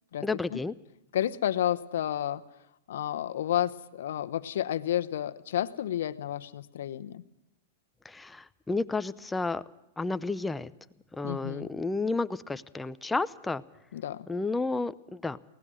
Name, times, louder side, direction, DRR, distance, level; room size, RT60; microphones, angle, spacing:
voice 1, 0.2-0.7 8.0-9.6 10.0-10.7 11.1-13.6 14.3-15.4, left 3 dB, 10° left, 14 dB, 0.7 m, -31 dB
voice 2, 1.1-2.4 2.9-7.2 11.2-11.7 13.9-14.3, left 11 dB, 75° left, 10 dB, 1.0 m, -31 dB
23.0 x 18.0 x 6.5 m, 0.89 s
hypercardioid pair, 125°, 0 cm